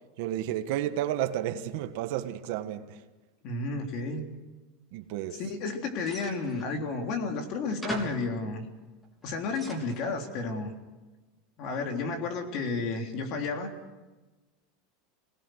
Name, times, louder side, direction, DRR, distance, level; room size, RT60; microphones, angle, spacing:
voice 1, 0.2-3.0 4.9-5.4, right 12 dB, 60° right, 1.4 m, -31 dB
voice 2, 3.4-4.2 5.3-8.6 9.2-10.7 11.6-13.7, left 3 dB, 45° left, 3.6 m, -32 dB
sound 1, 6.0-6.8 7.5-7.6 7.8-8.3 9.0-10.2, right 2 dB, 5° left, 4.0 m, -40 dB
26.0 x 19.0 x 6.5 m
supercardioid pair, 155°, 0 cm